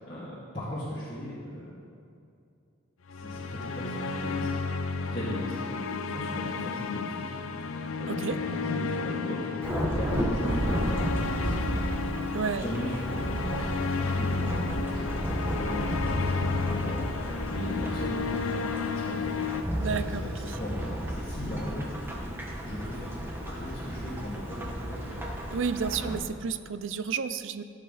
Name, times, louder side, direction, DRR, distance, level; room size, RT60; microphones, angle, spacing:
voice 1, 0.1-1.7 3.2-4.5 5.0-7.2 8.0-9.5 9.9-11.9 12.5-19.5 19.7-21.8 22.6-23.2 23.5-25.2 25.7-26.1, equal, 30° left, -12 dB, 2.3 m, -38 dB
sound 1, 3.1-19.6, left 4 dB, 80° left, 0.6 m, -32 dB
Thunderstorm / Rain, 9.6-26.2, equal, 10° right, 1.1 m, -33 dB
voice 2, 12.3-12.7 19.8-20.2 25.5-27.6, right 6 dB, 65° right, 12 dB, 0.5 m, -31 dB
15.0 x 8.2 x 4.0 m, 2.5 s
head